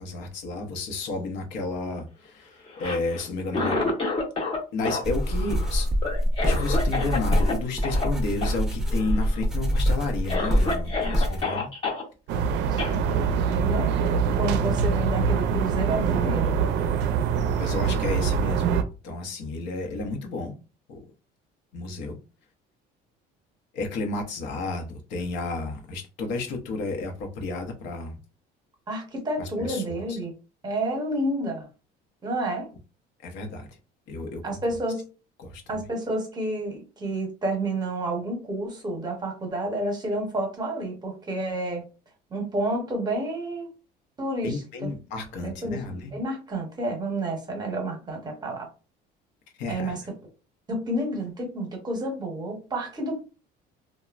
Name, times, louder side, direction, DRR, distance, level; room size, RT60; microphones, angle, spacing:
voice 1, 0.0-3.9 4.7-5.9 6.4-11.7 17.6-18.7 19.0-20.5 20.9-21.0 21.7-22.2 23.7-28.2 29.4-30.2 33.2-33.8 34.1-34.6 35.4-35.8 44.4-46.2 49.6-50.0, left 3 dB, 80° left, 0.7 m, -32 dB
Cough, 2.7-4.6 4.8-7.5 7.8-8.1 8.4-8.6 8.9-9.4 9.9-10.0 10.3-12.0 12.8-12.9, left 3 dB, 30° left, 0.8 m, -29 dB
sound 1, 5.0-11.4, equal, 5° right, 0.4 m, -25 dB
sound 2, 12.3-18.8, right 6 dB, 70° right, 0.4 m, -24 dB
voice 2, 12.7-13.2 13.5-13.9 14.4-16.6 28.9-30.3 30.6-31.7 32.2-32.7 34.4-35.1 35.7-41.8 42.3-43.7 44.2-44.9 45.4-45.8 46.1-48.7 49.7-50.0 50.7-53.3, right 1 dB, 20° right, 0.9 m, -30 dB
3.0 x 2.1 x 2.4 m
cardioid pair, 145°, 19 cm